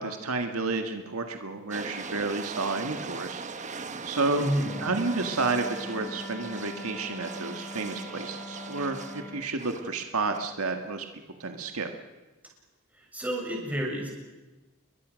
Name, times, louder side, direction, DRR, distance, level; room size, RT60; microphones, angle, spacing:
voice 1, 0.0-3.4 4.0-4.5 4.8-11.1 11.4-11.9, right 3 dB, 75° right, 5 dB, 1.9 m, -31 dB
sound 1, 1.7-9.9 10.3-10.4, right 4 dB, 35° right, 1.3 m, -40 dB
voice 2, 4.3-4.8 12.9-14.1, equal, 5° right, -2 dB, 7.2 m, -30 dB
Wind instrument woodwind instrument, 4.6-9.5, left 1 dB, 10° left, 1.0 m, -42 dB
29.5 x 22.0 x 6.5 m, 1.2 s
head